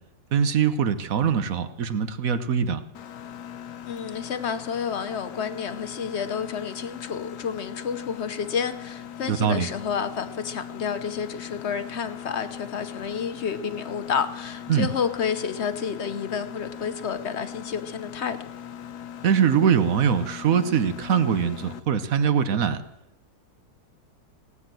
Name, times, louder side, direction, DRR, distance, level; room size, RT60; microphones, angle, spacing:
voice 1, 0.3-2.8 9.3-9.7 14.7-14.9 19.2-22.8, right 7 dB, 55° right, 11 dB, 1.2 m, -22 dB
Mechanisms, 2.9-21.8, left 9 dB, 65° left, 1.3 m, -40 dB
voice 2, 3.8-18.4, left 6 dB, 45° left, 10 dB, 1.0 m, -30 dB
18.0 x 9.7 x 7.6 m, 0.90 s
omnidirectional pair, 2.0 m